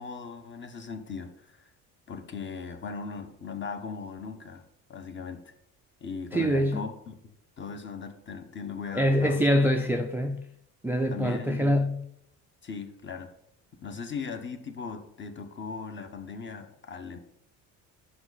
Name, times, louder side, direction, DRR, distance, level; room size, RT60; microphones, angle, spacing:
voice 1, 0.0-1.7 2.1-4.6 4.9-5.5 6.0-7.1 7.6-9.5 11.1-11.8 12.6-13.3 13.8-17.2, left 5 dB, 30° left, 0.9 m, -38 dB
voice 2, 6.3-6.9 8.9-10.5 10.8-12.0, equal, 5° right, 0.4 m, -24 dB
5.9 x 5.3 x 4.0 m
supercardioid pair, 100°, 38 cm